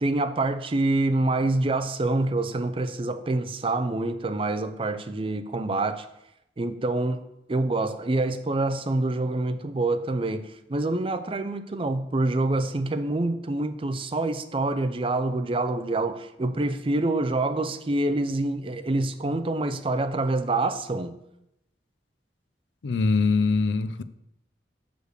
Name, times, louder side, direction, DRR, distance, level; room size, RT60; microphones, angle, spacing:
voice 1, 0.0-6.1 6.6-7.2 7.5-21.2, right 2 dB, 30° right, 9 dB, 0.5 m, -26 dB
voice 2, 22.8-24.0, left 4 dB, 90° left, 13 dB, 0.5 m, -23 dB
6.6 x 5.2 x 6.4 m, 0.84 s
head